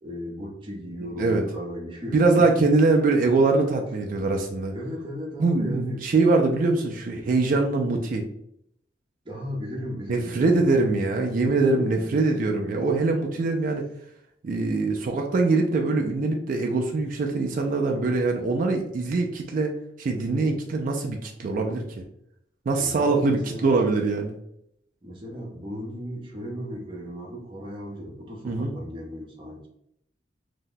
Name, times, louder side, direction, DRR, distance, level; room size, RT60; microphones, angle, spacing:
voice 1, 0.0-2.8 4.7-6.1 9.2-10.9 11.4-12.7 22.7-23.7 25.0-29.7, equal, 25° right, -3 dB, 0.7 m, -36 dB
voice 2, 2.1-4.7 5.4-8.2 10.1-13.9 14.4-21.8 22.7-24.3 28.4-28.7, right 3 dB, 45° right, 2 dB, 0.3 m, -23 dB
2.7 x 2.1 x 3.8 m, 0.75 s
head